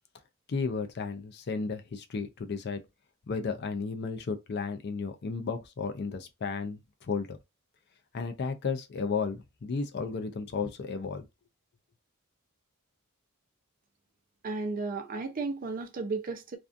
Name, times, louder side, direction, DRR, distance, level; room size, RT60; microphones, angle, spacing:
voice 1, 0.5-2.8 3.3-7.4 8.1-11.2, left 4 dB, 50° left, 0.4 m, -33 dB
voice 2, 14.4-16.6, right 3 dB, 40° right, 0.5 m, -34 dB
2.5 x 2.3 x 2.4 m
head